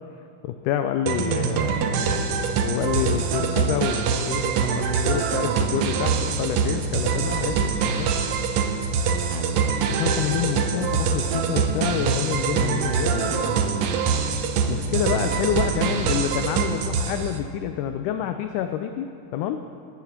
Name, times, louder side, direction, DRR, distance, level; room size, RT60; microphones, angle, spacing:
voice 1, 0.4-8.1 9.9-13.8 14.7-19.1 19.3-19.6, left 10 dB, 90° left, 8 dB, 1.8 m, -28 dB
sound 1, 1.1-17.4, right 6 dB, 90° right, 1.5 m, -24 dB
15.5 x 7.1 x 5.9 m, 2.7 s
omnidirectional pair, 4.2 m